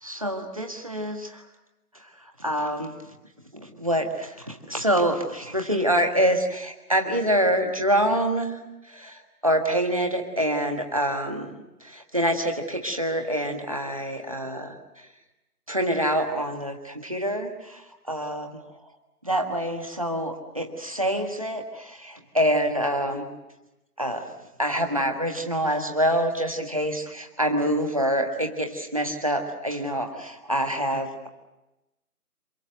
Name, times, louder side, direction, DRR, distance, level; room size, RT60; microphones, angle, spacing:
voice 1, 0.0-1.5 1.9-2.9 3.5-15.1 15.7-18.5 19.2-23.3 24.0-24.3 24.6-31.3, equal, 20° right, 4 dB, 1.6 m, -26 dB
27.5 x 25.5 x 6.5 m, 0.98 s
figure-of-eight pair, 175°, 46 cm